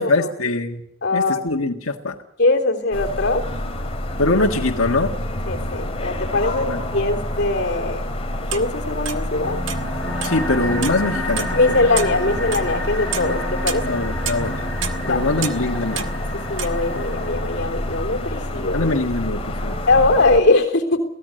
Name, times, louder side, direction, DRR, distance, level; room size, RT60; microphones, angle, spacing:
voice 1, 0.0-0.8 1.1-2.1 4.2-5.1 6.7-6.8 10.2-11.6 13.8-14.5 15.1-16.0 18.7-19.8, left 2 dB, 85° left, 1 dB, 1.8 m, -22 dB
voice 2, 1.0-1.4 2.4-3.4 5.5-8.0 8.5-9.6 11.5-14.0 15.0-15.2 16.5-18.9 19.9-21.0, left 2 dB, 55° left, 3 dB, 3.3 m, -21 dB
sound 1, 2.9-20.4, left 1 dB, 30° left, 2.4 m, -28 dB
sound 2, 8.5-9.2 9.7-10.5 10.8-11.1 11.4-11.5 12.0-12.2 12.5-12.7 13.1-16.3 16.6-16.8, right 8 dB, 65° right, 1.6 m, -29 dB
sound 3, 9.4-18.4, left 1 dB, 5° left, 6.1 m, -31 dB
23.0 x 17.5 x 7.8 m, 0.74 s
head